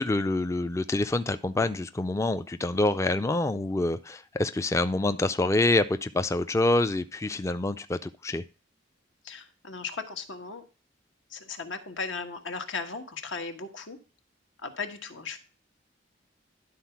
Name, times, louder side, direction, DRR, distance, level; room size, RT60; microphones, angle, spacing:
voice 1, 0.0-8.4, left 2 dB, 15° left, 11 dB, 0.3 m, -26 dB
voice 2, 9.2-10.6 11.3-14.0 14.6-15.4, left 4 dB, 85° left, 6 dB, 1.3 m, -36 dB
11.0 x 4.1 x 5.8 m, 0.36 s
head